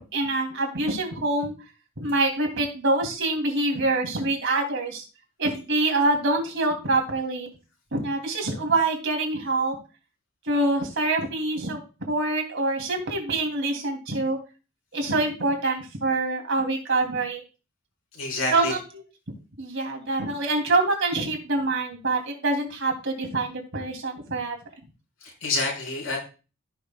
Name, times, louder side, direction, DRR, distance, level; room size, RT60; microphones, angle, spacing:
voice 1, 0.1-1.5 2.0-5.0 5.4-7.5 7.9-9.8 10.4-11.8 12.1-14.4 14.9-17.4 18.5-19.0 19.6-24.6, right 2 dB, 65° right, 2 dB, 2.7 m, -25 dB
voice 2, 18.1-18.7 25.2-26.2, left 2 dB, 80° left, -1 dB, 4.4 m, -28 dB
15.5 x 6.1 x 2.3 m, 0.33 s
head